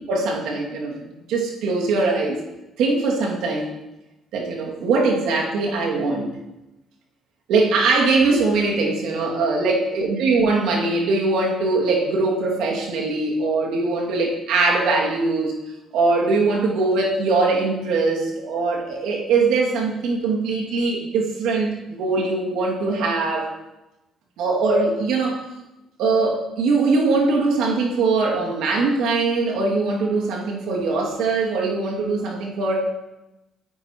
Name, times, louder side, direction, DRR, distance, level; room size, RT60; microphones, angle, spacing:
voice 1, 0.1-2.4 2.8-3.7 4.3-6.3 7.5-15.6 15.9-23.5 24.4-25.4 26.0-32.8, right 3 dB, 80° right, -1 dB, 2.3 m, -21 dB
15.0 x 9.1 x 3.0 m, 0.98 s
supercardioid pair, 75°, 0 cm